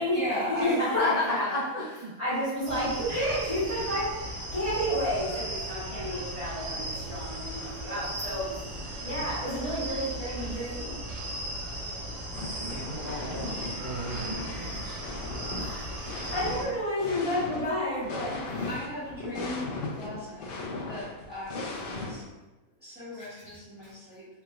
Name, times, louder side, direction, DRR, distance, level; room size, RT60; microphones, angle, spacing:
voice 1, 0.1-1.2 18.7-22.2 22.8-24.3, left 1 dB, 5° right, -13 dB, 1.3 m, -37 dB
voice 2, 0.9-2.1 12.6-15.0, left 2 dB, 35° right, -13 dB, 1.2 m, -32 dB
voice 3, 2.2-4.1 4.5-8.4 9.0-10.9 15.5-15.9 16.3-18.7, equal, 25° left, -13 dB, 1.4 m, -31 dB
sound 1, 2.6-16.7, right 1 dB, 65° right, 1.0 m, -37 dB
sound 2, 3.1-5.0 5.3-5.5, left 1 dB, 50° left, 1.3 m, -44 dB
sound 3, 12.3-13.7 14.0-22.3, left 3 dB, 85° left, 0.5 m, -38 dB
3.3 x 3.0 x 2.3 m, 1.1 s
omnidirectional pair, 1.5 m